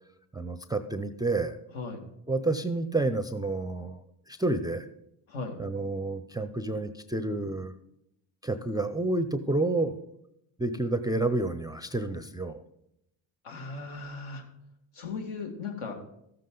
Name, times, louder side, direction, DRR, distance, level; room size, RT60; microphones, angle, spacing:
voice 1, 0.3-1.6 2.3-4.0 4.3-4.9 5.6-7.7 8.4-10.0 10.6-12.6, right 2 dB, 10° right, 10 dB, 0.4 m, -29 dB
voice 2, 5.3-5.6 13.4-14.4 14.9-15.9, left 4 dB, 70° left, 3 dB, 2.3 m, -37 dB
13.5 x 7.6 x 3.8 m, 0.82 s
supercardioid pair, 80°, 50 cm